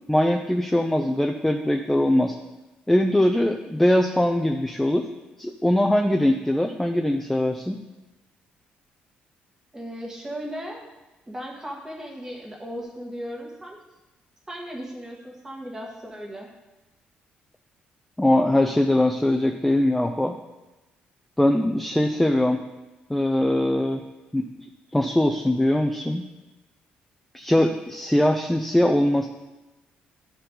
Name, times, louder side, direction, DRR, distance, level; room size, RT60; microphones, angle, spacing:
voice 1, 0.1-2.4 2.9-5.1 5.4-7.8 18.2-20.3 21.4-22.6 23.1-24.0 24.3-24.5 24.9-26.2 27.3-29.3, left 1 dB, 5° left, 4 dB, 0.4 m, -21 dB
voice 2, 9.7-10.9 11.3-13.8 14.5-16.5, equal, 15° right, -1 dB, 1.6 m, -36 dB
12.5 x 4.5 x 3.9 m, 1.1 s
cardioid pair, 145°, 3 cm